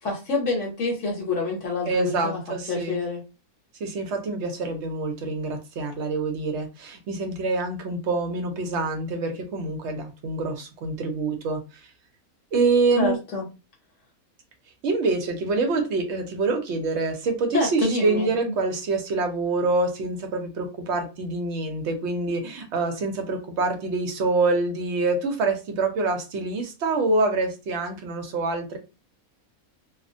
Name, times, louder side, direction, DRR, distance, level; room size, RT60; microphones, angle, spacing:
voice 1, 0.0-2.4 2.7-3.2 13.0-13.5 17.5-18.3, left 3 dB, 65° left, 0.9 m, -27 dB
voice 2, 1.8-3.0 3.8-11.6 12.5-13.2 14.8-28.8, right 3 dB, 65° right, 0.8 m, -26 dB
2.3 x 2.1 x 2.5 m
omnidirectional pair, 1.5 m